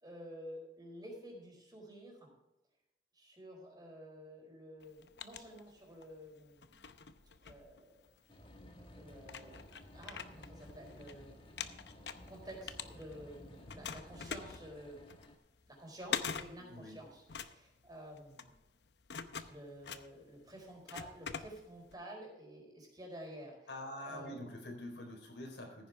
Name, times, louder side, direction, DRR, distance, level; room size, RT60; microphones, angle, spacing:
voice 1, 0.0-2.3 3.1-6.7 7.4-8.0 8.9-9.7 9.9-11.3 12.3-15.0 15.7-18.5 19.5-23.7 24.0-24.5, equal, 25° right, -1 dB, 4.4 m, -51 dB
sound 1, 4.8-6.1 6.6-8.3 8.9-9.0 9.2-11.1 11.4-13.3 13.7-21.9, left 7 dB, 70° left, 0.8 m, -44 dB
sound 2, 8.3-15.4, left 1 dB, 30° left, 1.5 m, -55 dB
voice 2, 16.7-17.0 23.7-25.9, left 1 dB, 85° left, 1 dB, 4.1 m, -45 dB
15.0 x 10.0 x 3.5 m, 0.94 s
head